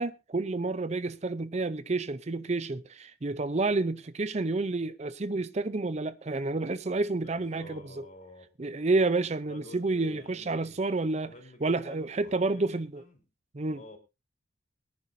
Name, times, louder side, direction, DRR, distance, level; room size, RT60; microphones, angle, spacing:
voice 1, 0.0-8.1 8.6-11.3 11.6-13.0 13.5-13.8, right 3 dB, 35° right, 0.6 m, -29 dB
voice 2, 7.4-8.5 9.5-10.8 11.2-13.2 13.7-14.0, left 1 dB, 40° left, 3.9 m, -50 dB
23.0 x 10.5 x 2.6 m
head